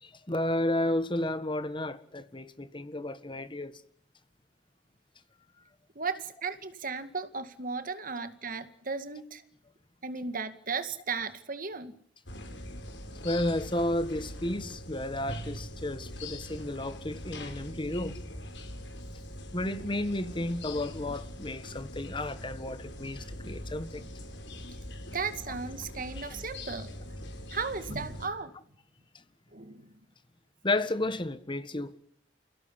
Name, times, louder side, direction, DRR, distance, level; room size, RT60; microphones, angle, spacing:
voice 1, 0.0-3.7 13.2-18.2 19.5-24.0 30.6-31.9, left 1 dB, 30° left, 1.5 m, -32 dB
voice 2, 6.0-9.4 10.0-11.9 25.1-26.9 27.5-28.5 29.5-29.9, right 4 dB, 50° right, 2.2 m, -35 dB
sound 1, 12.3-28.3, left 1 dB, 85° left, 5.3 m, -42 dB
28.5 x 17.0 x 10.0 m
head